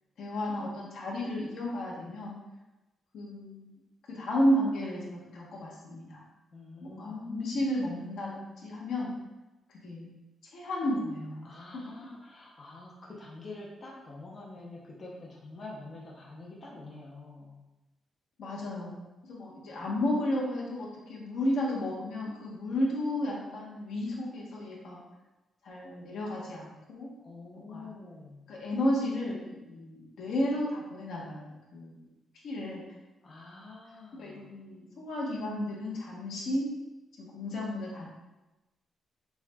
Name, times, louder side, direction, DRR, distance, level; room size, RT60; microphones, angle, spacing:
voice 1, 0.2-2.4 3.1-3.7 4.1-6.2 6.8-9.1 9.7-10.1 10.5-11.8 18.4-25.0 25.6-27.1 27.5-27.9 28.5-31.9 32.4-32.9 34.2-36.7 37.2-38.1, left 1 dB, 75° left, -4 dB, 1.0 m, -33 dB
voice 2, 6.5-7.6 11.4-17.6 27.2-28.5 33.2-34.5, left 3 dB, 35° left, -4 dB, 0.6 m, -46 dB
7.0 x 2.4 x 2.2 m, 1.0 s
wide cardioid pair, 165°, 0 cm